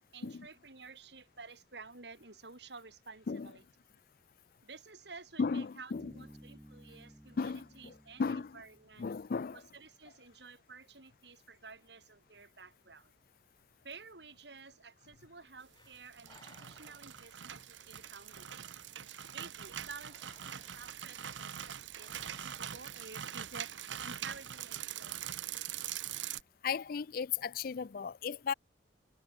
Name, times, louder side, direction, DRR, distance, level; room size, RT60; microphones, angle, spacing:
voice 1, 0.0-3.6 4.6-9.1 9.5-13.1 13.8-18.8 19.3-25.2, right 4 dB, 65° right, 3.2 m, -52 dB
voice 2, 5.4-6.1 7.4-8.6 9.0-9.6 26.6-28.5, left 5 dB, 55° left, 0.4 m, -35 dB
Bass guitar, 5.9-9.6, equal, 5° right, 0.5 m, -57 dB
Breathing, 15.1-23.0, left 3 dB, 25° left, 5.1 m, -66 dB
sound 1, 15.9-26.4, right 10 dB, 90° right, 1.1 m, -43 dB
head